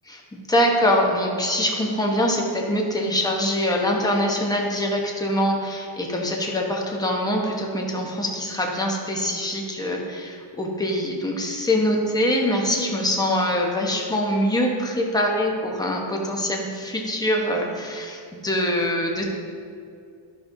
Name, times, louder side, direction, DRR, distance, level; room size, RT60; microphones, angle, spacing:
voice 1, 0.1-19.3, left 1 dB, 10° left, 0 dB, 1.0 m, -24 dB
11.5 x 5.5 x 2.7 m, 2.4 s
cardioid pair, 115°, 50 cm